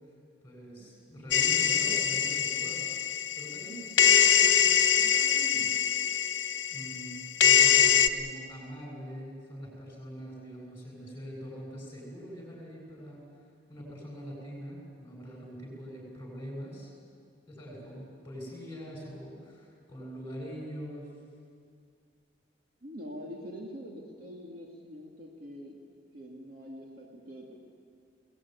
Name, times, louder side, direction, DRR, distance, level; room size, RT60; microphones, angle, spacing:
voice 1, 0.4-2.9 3.3-5.8 6.7-13.4 13.7-16.9 17.5-21.1, equal, 15° left, -2 dB, 7.6 m, -43 dB
sound 1, 1.3-3.7 4.0-8.1, left 8 dB, 70° left, 1.0 m, -23 dB
voice 2, 22.8-25.8 26.1-27.6, equal, 50° right, -1 dB, 2.4 m, -44 dB
22.0 x 18.5 x 9.6 m, 2.2 s
head